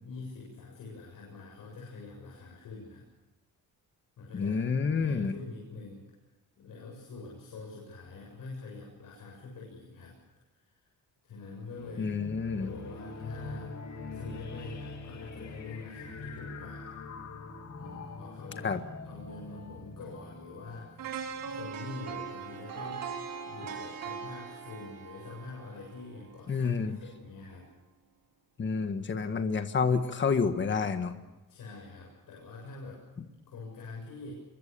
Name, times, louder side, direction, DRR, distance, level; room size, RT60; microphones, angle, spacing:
voice 1, 0.0-3.0 4.2-4.6 5.0-6.1 6.6-10.2 10.6-10.9 11.2-12.2 12.6-16.9 17.8-18.7 19.0-21.1 21.4-23.1 23.4-27.7 31.5-33.0 33.5-34.3, left 3 dB, 65° left, -2 dB, 7.6 m, -45 dB
voice 2, 4.3-5.3 12.0-12.7 18.6-18.8 26.5-26.9 28.6-31.1, left 5 dB, 30° left, 7 dB, 1.7 m, -29 dB
sound 1, 11.8-22.0, left 3 dB, 50° left, 3.3 m, -44 dB
sound 2, 21.0-27.0 27.4-27.5, right 6 dB, 70° right, 4.3 m, -41 dB
26.5 x 23.0 x 7.0 m, 1.1 s
wide cardioid pair, 170°, 36 cm